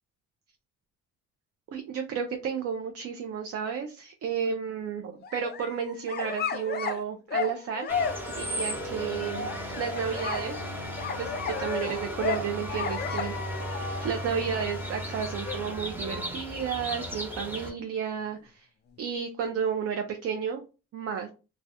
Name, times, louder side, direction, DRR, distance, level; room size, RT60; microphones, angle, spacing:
voice 1, 1.7-7.9 8.3-9.5 9.8-10.6 10.9-18.7 19.0-20.6 20.9-21.3, right 7 dB, 55° right, 4 dB, 0.5 m, -32 dB
sound 1, 5.1-7.0 7.3-8.4 9.3-16.6, left 6 dB, 35° left, 0.4 m, -34 dB
sound 2, 7.9-17.7, equal, 5° right, 0.8 m, -35 dB
2.3 x 2.1 x 2.7 m, 0.32 s
cardioid pair, 90°, 30 cm